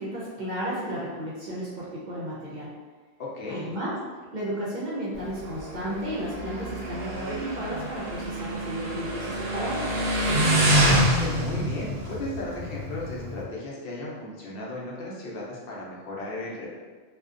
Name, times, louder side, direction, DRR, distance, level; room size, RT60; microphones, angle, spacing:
voice 1, 0.0-2.7 3.5-3.9 4.3-10.0, equal, 55° right, -6 dB, 0.6 m, -33 dB
voice 2, 3.2-3.7 10.5-16.7, left 2 dB, 65° left, -5 dB, 0.8 m, -35 dB
Motorcycle, 5.1-13.4, right 1 dB, 80° right, 0.9 m, -26 dB
2.5 x 2.2 x 2.4 m, 1.4 s
omnidirectional pair, 1.1 m